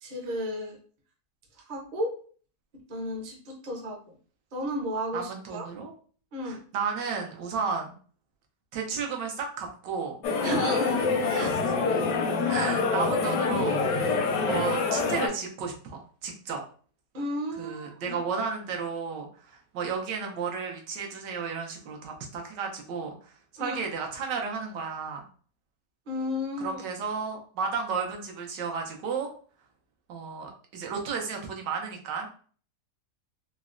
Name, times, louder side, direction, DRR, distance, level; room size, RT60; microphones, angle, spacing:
voice 1, 0.0-0.8 1.7-2.1 2.9-4.0 4.5-5.7 6.3-6.6 10.4-11.5 17.1-18.2 23.6-23.8 26.1-26.8, equal, 50° right, 0 dB, 0.5 m, -33 dB
voice 2, 5.1-5.9 6.4-7.9 8.7-10.2 11.3-11.7 12.5-14.1 14.4-16.6 17.6-23.3 23.6-25.2 26.6-29.3 30.1-32.3, right 5 dB, 85° right, 2 dB, 1.3 m, -33 dB
sound 1, 10.2-15.3, left 4 dB, 85° left, 1.2 m, -26 dB
3.8 x 2.1 x 2.4 m, 0.44 s
omnidirectional pair, 1.8 m